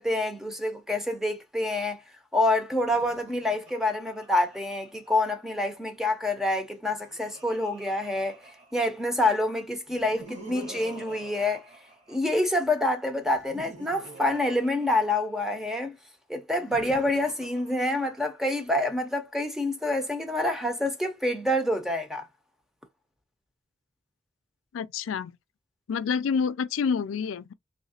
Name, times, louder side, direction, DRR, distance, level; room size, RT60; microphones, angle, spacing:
voice 1, 0.0-2.0 2.3-8.4 8.7-11.7 12.1-16.0 16.3-22.3, left 1 dB, ahead, 0.6 m, -27 dB
Laughter, 2.8-5.5 6.6-9.2 9.9-12.6 13.2-15.6 16.5-18.6, right 2 dB, 35° right, 1.3 m, -48 dB
voice 2, 24.7-25.4 25.9-27.5, left 6 dB, 90° left, 0.4 m, -28 dB
3.6 x 2.8 x 2.8 m
head